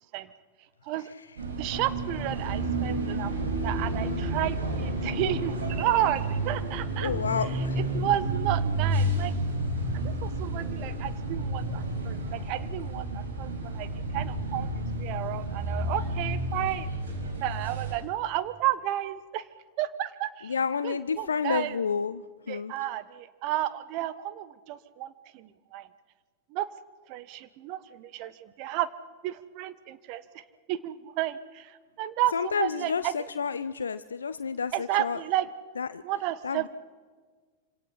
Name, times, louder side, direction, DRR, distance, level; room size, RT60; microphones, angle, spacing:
sound 1, 1.4-17.9, right 1 dB, 65° right, 6.2 m, -31 dB
voice 1, 1.6-7.2 7.9-9.3 9.9-16.9 17.4-19.5 19.8-20.5 20.8-21.7 22.5-25.9 26.5-26.7 27.1-28.9 29.2-30.4 30.7-33.1 34.7-35.5 36.0-36.7, right 13 dB, 45° right, 14 dB, 1.3 m, -32 dB
voice 2, 7.0-7.8 20.4-22.7 32.3-35.2 35.8-36.0 36.4-36.7, left 6 dB, 70° left, 13 dB, 0.6 m, -30 dB
26.5 x 26.0 x 5.7 m, 1.5 s
figure-of-eight pair, 90°, 0 cm